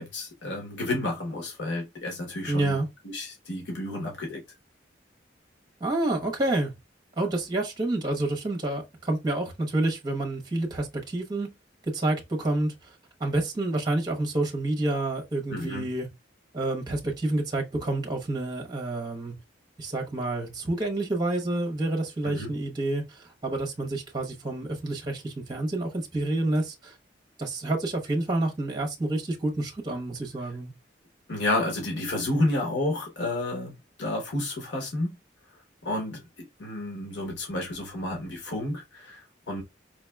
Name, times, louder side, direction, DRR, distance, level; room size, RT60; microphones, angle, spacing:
voice 1, 0.0-4.4 15.5-15.9 22.2-22.5 31.3-35.2 35.8-39.6, left 1 dB, 80° left, 1.0 m, -31 dB
voice 2, 2.5-2.9 5.8-6.7 7.2-11.5 11.9-12.9 13.2-16.1 16.5-19.3 19.8-26.9 27.4-30.7, right 2 dB, 25° right, 0.9 m, -28 dB
4.9 x 2.9 x 2.2 m
head